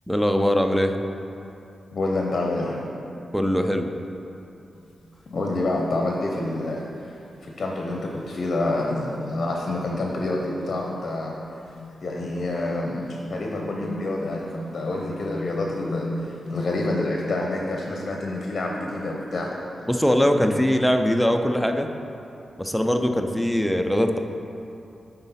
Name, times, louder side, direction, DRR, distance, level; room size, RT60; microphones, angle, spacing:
voice 1, 0.1-0.9 3.3-3.9 19.9-21.9 22.6-24.2, equal, ahead, 4 dB, 0.4 m, -21 dB
voice 2, 1.9-2.9 5.3-7.2 7.4-11.3 12.0-19.9, left 2 dB, 50° left, 0 dB, 0.7 m, -28 dB
sound 1, 4.7-5.0 5.4-5.7 6.1-6.3 6.6-6.7 7.1-16.9, left 1 dB, 85° left, 0.5 m, -39 dB
9.5 x 4.0 x 4.1 m, 2.7 s
wide cardioid pair, 120°, 0 cm